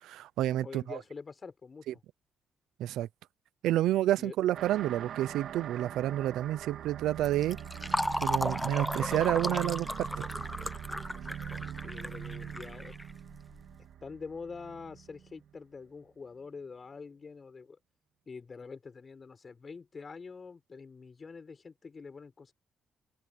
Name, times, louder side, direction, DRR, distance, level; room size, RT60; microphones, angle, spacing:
voice 1, 0.0-1.0 1.9-2.0 2.8-3.1 3.6-7.6 8.2-10.1, right 13 dB, 85° right, 0.7 m, -29 dB
voice 2, 0.6-1.8 4.2-4.3 11.1-13.0 14.0-17.8 18.3-22.5, left 4 dB, 35° left, 6.7 m, -45 dB
sound 1, 4.5-15.5, right 9 dB, 70° right, 2.8 m, -42 dB
Fill (with liquid), 7.2-13.6, left 1 dB, 5° left, 0.8 m, -35 dB
open air
cardioid pair, 90°, 0 cm